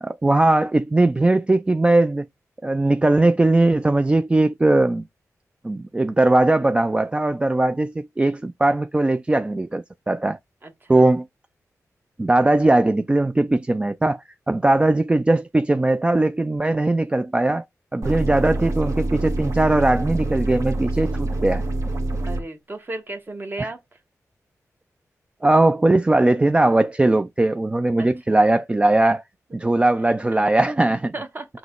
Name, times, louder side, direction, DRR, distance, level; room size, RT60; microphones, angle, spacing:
voice 1, 0.0-2.3 2.6-5.0 5.6-10.4 10.9-11.3 12.2-17.6 17.9-21.6 23.6-23.7 25.4-29.2 29.5-31.1, right 2 dB, 20° right, 0.3 m, -19 dB
voice 2, 10.6-11.1 22.3-23.8 28.0-28.4 30.3-30.4 31.1-31.5, right 2 dB, 35° right, 1.2 m, -34 dB
sound 1, 18.0-22.4, right 2 dB, 60° right, 1.4 m, -26 dB
3.8 x 2.9 x 3.6 m
cardioid pair, 70°, 6 cm